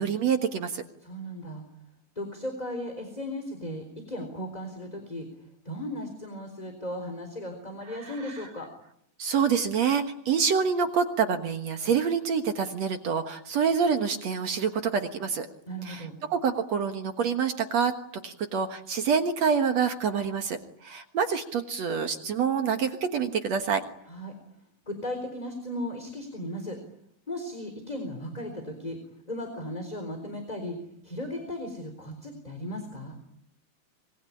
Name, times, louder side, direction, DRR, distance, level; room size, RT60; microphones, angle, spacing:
voice 1, 0.0-0.8 9.2-15.5 15.8-17.9 18.2-20.6 20.8-23.8, right 6 dB, 55° right, 6 dB, 2.2 m, -26 dB
voice 2, 1.0-1.6 2.2-5.3 5.6-8.7 15.7-16.2 24.1-24.3 24.9-26.8 27.3-29.0 29.3-30.8 31.0-33.2, left 1 dB, 10° left, 5 dB, 3.7 m, -36 dB
25.5 x 22.0 x 9.9 m, 0.73 s
omnidirectional pair, 4.3 m